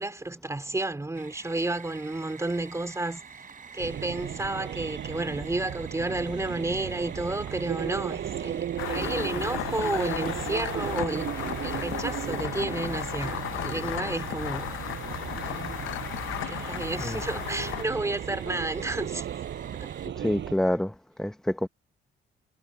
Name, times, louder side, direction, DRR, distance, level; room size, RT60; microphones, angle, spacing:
voice 1, 0.0-3.2 3.7-14.7 15.2-15.8 16.5-19.2 19.8-19.9, right 2 dB, 15° right, 3.5 m, -31 dB
sound 1, 1.1-20.1, right 6 dB, 45° right, 4.4 m, -48 dB
sound 2, 3.8-20.5, right 10 dB, 65° right, 6.2 m, -36 dB
sound 3, 8.8-17.8, left 14 dB, 85° left, 0.7 m, -35 dB
voice 2, 20.2-21.7, left 1 dB, 5° left, 0.9 m, -27 dB
cardioid pair, 90°, 20 cm